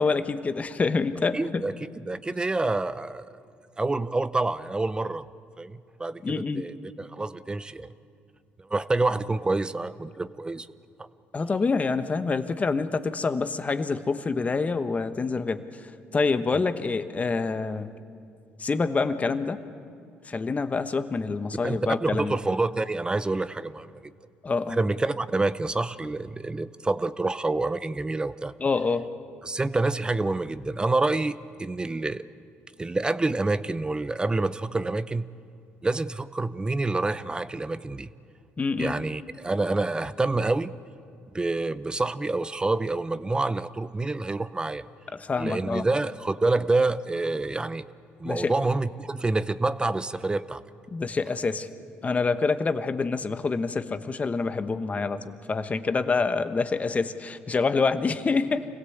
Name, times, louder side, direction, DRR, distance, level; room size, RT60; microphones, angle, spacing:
voice 1, 0.0-1.6 6.2-6.6 11.3-17.9 18.6-19.6 20.2-22.4 24.4-24.8 28.6-29.0 38.6-38.9 45.1-45.9 48.2-48.5 50.9-51.7 52.0-58.6, left 4 dB, 30° left, 11 dB, 1.1 m, -26 dB
voice 2, 1.3-1.7 2.1-3.3 3.8-5.3 5.6-7.9 8.7-10.7 21.6-23.9 24.7-28.5 29.4-32.2 32.8-35.3 35.8-38.1 38.8-40.7 41.3-44.8 45.4-47.8 48.2-50.6, right 2 dB, 20° right, 15 dB, 0.7 m, -27 dB
25.5 x 16.5 x 8.0 m, 2.4 s
supercardioid pair, 75°, 5 cm